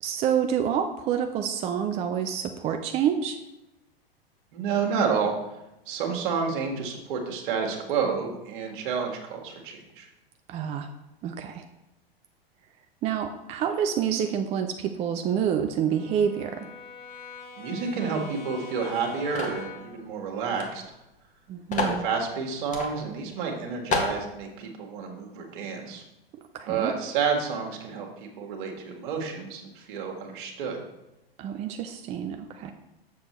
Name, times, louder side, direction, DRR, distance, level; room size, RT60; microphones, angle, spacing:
voice 1, 0.0-3.4 10.5-10.9 11.2-11.7 13.0-16.7 21.5-22.1 26.5-26.9 31.4-32.7, right 8 dB, 20° right, 6 dB, 0.4 m, -28 dB
voice 2, 4.5-5.3 5.9-10.1 17.6-20.8 21.7-26.0 26.7-30.8, right 5 dB, 55° right, 1 dB, 1.7 m, -30 dB
Brass instrument, 14.5-20.0, left 4 dB, 55° left, 1.8 m, -45 dB
sound 1, 19.4-19.7 20.6-20.7 20.9-21.0 21.7-22.0 22.7-22.9 23.4-23.5 23.9-24.2, left 4 dB, 25° left, 1.4 m, -28 dB
7.7 x 6.9 x 3.1 m, 0.94 s
figure-of-eight pair, 95°, 30 cm